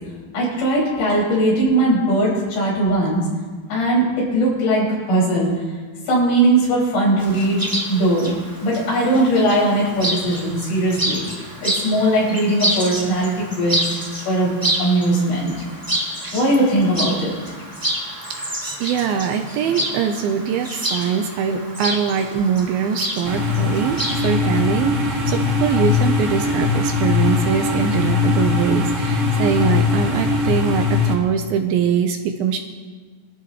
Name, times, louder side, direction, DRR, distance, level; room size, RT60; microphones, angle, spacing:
voice 1, 0.3-3.3 3.7-5.5 6.1-8.3 8.6-11.3 11.6-13.8 14.3-14.5 14.8-15.6 16.3-17.4, right 1 dB, 75° left, -5 dB, 7.6 m, -19 dB
Chirp tweet, 7.2-24.3, right 1 dB, 15° right, 0.8 m, -28 dB
voice 2, 18.2-32.6, right 7 dB, 80° right, 5 dB, 2.3 m, -22 dB
sound 1, 23.2-31.1, left 4 dB, 40° right, 1.0 m, -20 dB
24.5 x 13.5 x 3.1 m, 1.5 s
omnidirectional pair, 5.0 m